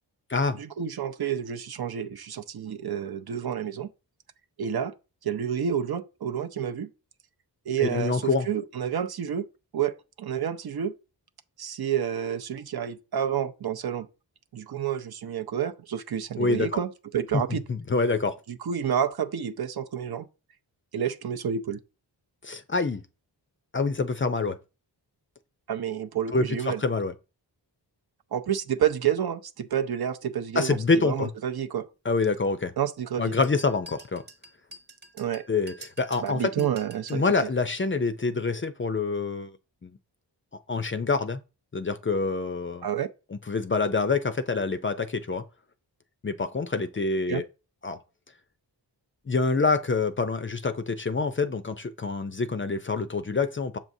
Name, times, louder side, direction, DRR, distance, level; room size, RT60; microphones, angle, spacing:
voice 1, 0.5-3.9 4.6-4.9 5.2-6.9 7.7-9.5 9.7-10.9 11.6-14.1 14.5-17.6 18.5-20.3 20.9-21.8 25.7-26.8 28.3-30.8 31.0-31.8 32.8-33.3 35.2-35.4 36.2-37.2 42.8-43.1 47.3-47.4, right 9 dB, 60° right, 0.6 m, -29 dB
voice 2, 7.8-8.5 16.4-16.7 17.3-18.4 22.4-23.0 23.7-24.6 26.3-27.1 30.6-31.3 32.0-32.7 33.2-34.2 35.5-36.7 37.1-39.5 39.8-40.0 40.7-41.4 41.7-42.9 43.3-45.4 46.2-47.4 47.8-48.0 49.3-53.8, left 4 dB, 30° left, 0.5 m, -26 dB
sound 1, 33.4-37.3, right 1 dB, 25° right, 1.0 m, -48 dB
7.1 x 6.0 x 2.7 m
wide cardioid pair, 100°, 43 cm